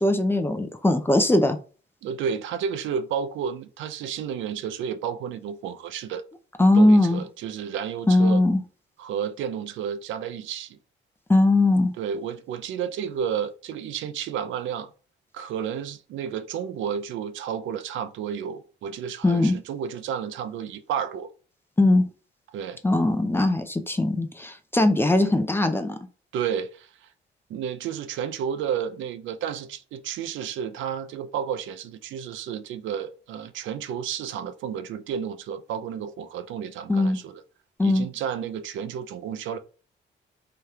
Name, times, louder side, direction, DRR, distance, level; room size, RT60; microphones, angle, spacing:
voice 1, 0.0-1.6 6.6-7.2 8.1-8.6 11.3-11.9 19.2-19.6 21.8-22.0 22.8-26.0 36.9-37.2 37.8-38.1, left 2 dB, 10° left, 0.4 m, -20 dB
voice 2, 2.0-6.2 6.8-8.4 9.0-10.8 12.0-14.9 15.3-21.3 22.5-22.8 26.3-26.9 27.5-37.4 37.8-39.6, right 8 dB, 75° right, 0.4 m, -31 dB
2.9 x 2.3 x 3.2 m
cardioid pair, 90°, 20 cm